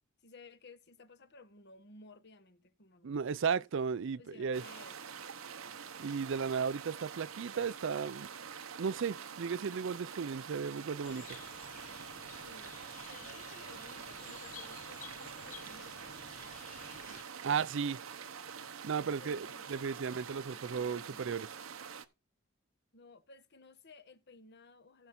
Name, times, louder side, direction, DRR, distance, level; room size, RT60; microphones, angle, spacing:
voice 1, 0.2-3.7 4.2-5.0 12.4-12.8 13.1-16.1 19.0-21.3 22.9-25.1, left 3 dB, 55° left, 1.2 m, -57 dB
voice 2, 3.0-4.6 6.0-8.3 8.8-11.4 17.0-18.0 18.8-21.5, right 6 dB, 65° right, 0.5 m, -35 dB
Mountain River, 4.5-22.0, right 7 dB, 80° right, 0.9 m, -46 dB
sound 1, 11.0-17.2, left 8 dB, 40° left, 0.5 m, -53 dB
15.5 x 5.6 x 3.8 m
head